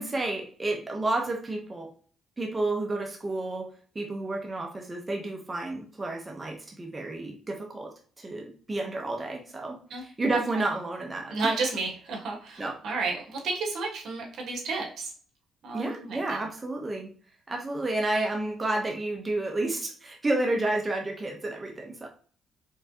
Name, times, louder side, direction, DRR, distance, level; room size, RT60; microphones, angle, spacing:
voice 1, 0.0-1.9 2.4-11.3 12.6-12.8 15.7-17.1 17.5-22.1, right 2 dB, 20° right, 1 dB, 1.0 m, -31 dB
voice 2, 10.3-10.6 11.3-15.1 15.6-16.4, right 3 dB, 70° right, 0 dB, 1.6 m, -32 dB
4.6 x 3.7 x 2.9 m, 0.43 s
cardioid pair, 90°, 0 cm